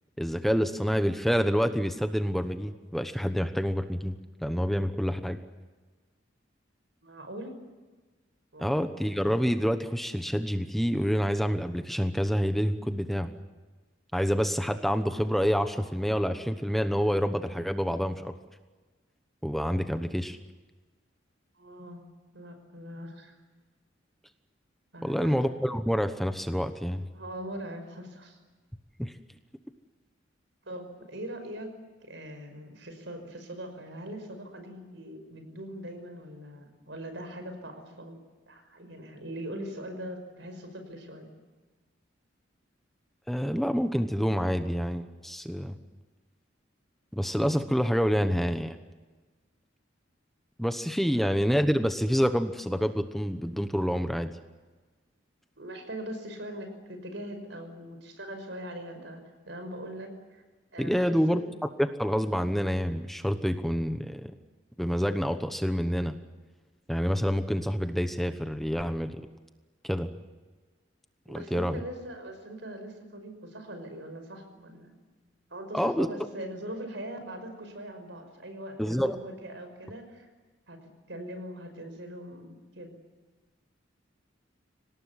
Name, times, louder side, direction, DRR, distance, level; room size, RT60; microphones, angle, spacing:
voice 1, 0.2-5.4 8.6-13.3 14.1-18.3 19.4-20.4 25.0-27.1 29.0-29.1 43.3-45.8 47.1-48.8 50.6-54.3 60.8-61.4 61.8-64.3 64.8-66.2 66.9-69.2 69.8-70.1 71.3-71.8 75.7-76.1 78.8-79.2, equal, ahead, 8 dB, 1.0 m, -27 dB
voice 2, 7.0-7.6 8.5-8.9 21.6-22.1 22.3-23.4 24.9-25.3 27.1-28.4 30.7-31.7 32.0-38.2 38.5-41.3 51.0-51.2 55.6-60.4 60.7-61.4 71.3-74.9 75.5-80.3 80.7-82.9, right 1 dB, 70° right, 7 dB, 5.6 m, -41 dB
25.5 x 18.5 x 9.9 m, 1.3 s
head